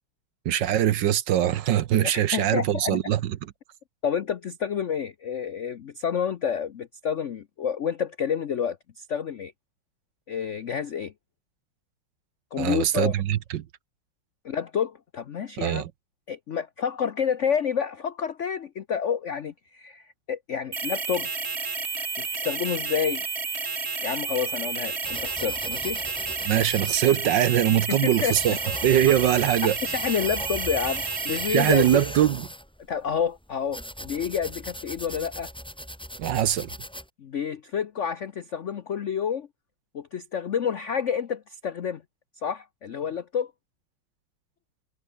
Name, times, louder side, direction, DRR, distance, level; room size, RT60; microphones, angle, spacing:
voice 1, 0.4-3.4 12.6-13.6 15.6-15.9 26.4-28.5 28.8-29.8 31.5-32.5 36.2-36.7, right 11 dB, 65° right, 1.3 m, -22 dB
voice 2, 2.0-3.0 4.0-9.5 10.3-11.1 12.5-13.1 14.4-15.8 16.3-21.3 22.2-23.2 24.0-26.0 27.9-28.6 29.0-29.1 29.8-32.0 32.9-35.5 37.2-39.5 39.9-42.0 42.4-43.5, left 7 dB, 75° left, 0.6 m, -29 dB
sound 1, 20.7-32.1, right 4 dB, 30° right, 2.1 m, -31 dB
sound 2, 25.0-37.1, equal, ahead, 7.6 m, -39 dB
omnidirectional pair, 2.4 m